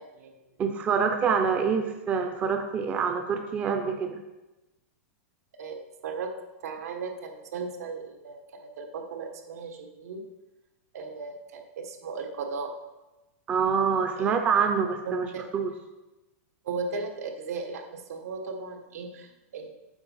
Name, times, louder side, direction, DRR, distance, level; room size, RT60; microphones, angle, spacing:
voice 1, 0.6-4.2 13.5-15.3 15.5-15.7, right 6 dB, 15° right, 5 dB, 0.5 m, -26 dB
voice 2, 6.6-10.2 10.9-12.7 14.1-14.3 15.0-15.4 16.6-19.7, right 4 dB, 75° right, 5 dB, 1.5 m, -36 dB
8.0 x 5.4 x 5.5 m, 1.0 s
supercardioid pair, 165°, 8 cm